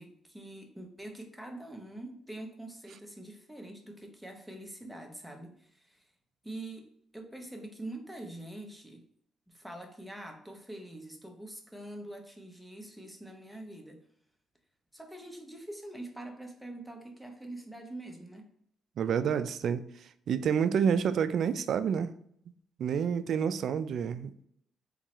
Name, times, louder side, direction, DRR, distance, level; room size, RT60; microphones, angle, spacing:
voice 1, 0.0-6.1 6.4-9.0 9.5-14.0 14.9-18.5, right 1 dB, ahead, 0.8 m, -45 dB
voice 2, 19.0-19.8 20.3-22.1 22.8-24.3, right 7 dB, 65° right, 0.3 m, -28 dB
3.7 x 3.1 x 3.0 m
cardioid pair, 90°, 0 cm